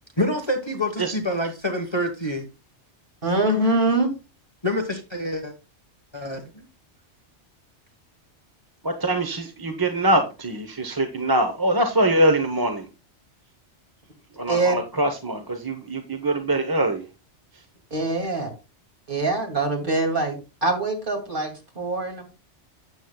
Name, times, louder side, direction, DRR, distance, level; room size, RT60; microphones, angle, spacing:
voice 1, 0.2-2.5 4.6-5.5 6.1-6.6, left 1 dB, 25° left, 1.2 m, -27 dB
voice 2, 3.2-4.1 14.5-14.8 17.9-18.5 19.1-22.2, right 2 dB, 45° right, 2.6 m, -24 dB
voice 3, 8.8-12.9 14.4-17.0, right 1 dB, 20° right, 0.8 m, -23 dB
12.5 x 8.1 x 2.3 m
omnidirectional pair, 1.2 m